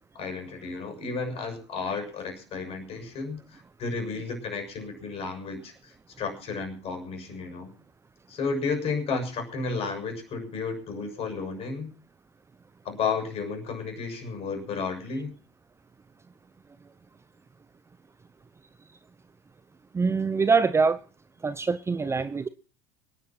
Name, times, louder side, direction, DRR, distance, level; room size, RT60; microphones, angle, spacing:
voice 1, 0.1-7.7 8.3-11.9 12.8-15.3, left 4 dB, 45° left, 5 dB, 6.8 m, -32 dB
voice 2, 19.9-21.0 21.4-22.5, right 4 dB, 20° right, 14 dB, 0.8 m, -24 dB
24.0 x 10.5 x 4.4 m, 0.38 s
hypercardioid pair, 80°, 14 cm